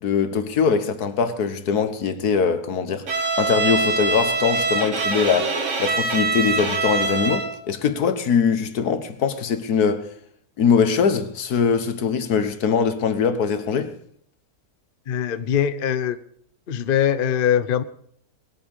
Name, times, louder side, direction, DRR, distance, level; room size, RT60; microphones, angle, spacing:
voice 1, 0.0-3.1 3.4-10.1 10.6-13.9, left 6 dB, 75° left, 1.7 m, -22 dB
Bowed string instrument, 3.1-7.6, right 3 dB, 50° right, 1.8 m, -24 dB
voice 2, 15.1-16.2 16.7-17.8, left 9 dB, 45° left, 0.7 m, -22 dB
19.5 x 8.8 x 6.5 m
omnidirectional pair, 1.7 m